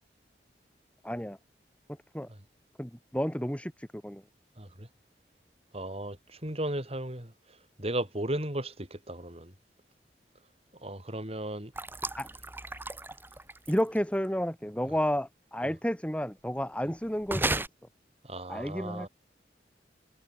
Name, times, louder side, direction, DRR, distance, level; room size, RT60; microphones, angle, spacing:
voice 1, 1.0-1.4 2.1-2.3 2.8-4.2 12.2-12.3 13.7-17.7 18.5-19.1, equal, 5° left, 4.8 m, -31 dB
voice 2, 4.6-4.9 5.7-7.3 7.8-9.5 10.8-11.7 15.6-15.7 18.2-19.1, right 1 dB, 35° right, 5.8 m, -35 dB
sound 1, 11.7-14.0 17.3-17.7, right 2 dB, 10° right, 4.4 m, -33 dB
head